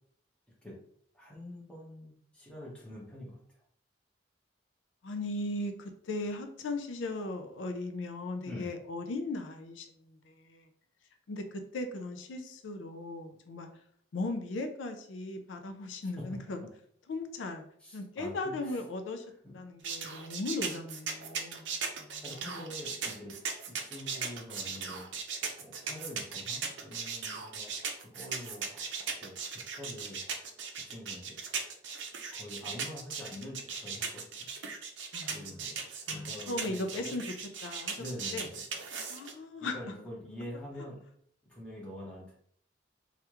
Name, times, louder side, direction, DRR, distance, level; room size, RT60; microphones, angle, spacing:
voice 1, 1.1-3.4 8.5-8.7 17.8-18.8 19.4-19.6 22.2-23.3 23.7-25.1 25.6-27.7 28.0-28.8 29.2-30.2 30.8-31.4 32.3-34.5 35.3-37.1 38.0-38.6 39.7-41.0 41.5-42.3, left 1 dB, 5° left, -5 dB, 0.9 m, -45 dB
voice 2, 5.0-10.7 11.3-13.7 14.1-16.6 17.1-17.6 17.9-19.2 19.5-22.7 35.1-35.4 36.1-37.3 37.6-38.0 38.3-38.5 39.1-39.9, left 2 dB, 85° left, 6 dB, 0.4 m, -38 dB
sound 1, 19.8-39.3, right 5 dB, 80° right, 0.5 m, -38 dB
3.4 x 2.3 x 2.9 m, 0.64 s
head